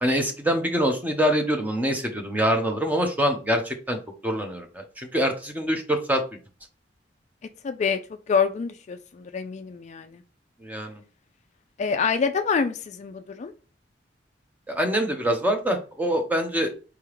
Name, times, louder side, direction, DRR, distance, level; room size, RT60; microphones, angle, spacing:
voice 1, 0.0-4.0 4.2-6.2 10.6-11.0 14.7-16.7, equal, 10° right, 3 dB, 0.8 m, -25 dB
voice 2, 7.6-8.0 8.3-10.2 11.8-13.5, left 5 dB, 40° left, 8 dB, 0.3 m, -26 dB
4.8 x 3.5 x 3.1 m, 0.35 s
head